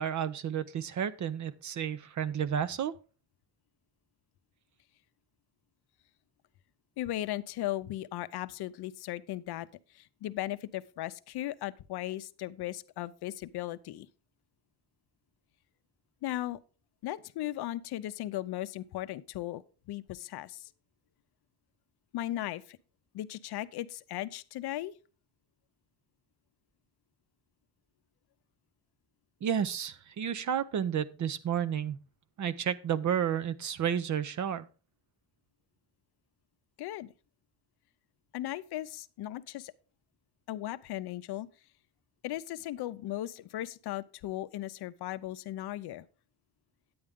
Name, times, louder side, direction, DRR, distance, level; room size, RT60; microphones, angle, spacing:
voice 1, 0.0-2.9 29.4-32.0 32.4-34.7, right 8 dB, 45° right, 0.6 m, -31 dB
voice 2, 7.0-9.7 9.9-14.1 16.2-16.6 17.0-19.6 19.9-20.7 22.1-22.8 23.1-24.9 36.8-37.1 38.3-39.7 40.5-41.5 42.2-46.1, left 14 dB, 70° left, 0.6 m, -37 dB
9.5 x 8.7 x 3.6 m
cardioid pair, 130°, 41 cm